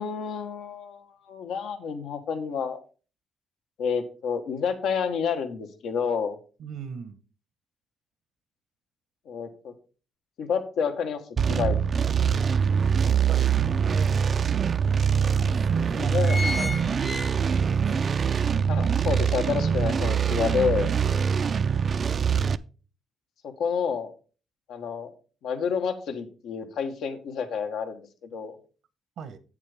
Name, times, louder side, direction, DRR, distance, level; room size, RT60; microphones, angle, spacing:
voice 1, 0.0-2.8 3.8-6.4 9.3-9.7 10.4-11.2 11.5-11.8 15.1-15.3 16.0-16.4 18.7-20.9 23.4-24.1 24.7-25.1 25.4-28.6, left 6 dB, 80° left, 1.2 m, -29 dB
voice 2, 6.6-7.2 12.0-12.1 13.2-14.4 15.4-18.3 29.2-29.4, right 7 dB, 75° right, 0.9 m, -39 dB
sound 1, 11.4-22.6, right 7 dB, 45° right, 0.4 m, -24 dB
sound 2, 12.0-12.1 12.6-13.8 14.4-14.5 14.7-14.8 15.5-15.7 16.0-17.8 18.2-18.3, left 3 dB, 25° left, 0.7 m, -33 dB
8.2 x 7.3 x 3.4 m
cardioid pair, 90°, 0 cm